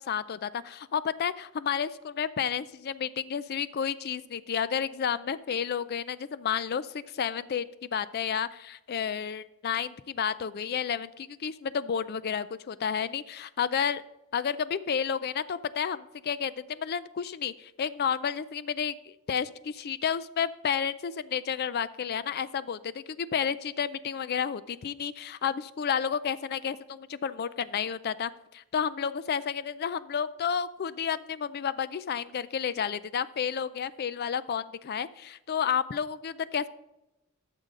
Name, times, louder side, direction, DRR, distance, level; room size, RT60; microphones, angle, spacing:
voice 1, 0.0-7.7 7.9-14.0 14.3-36.7, left 7 dB, 45° left, 16 dB, 0.4 m, -31 dB
13.0 x 6.7 x 3.7 m, 0.95 s
head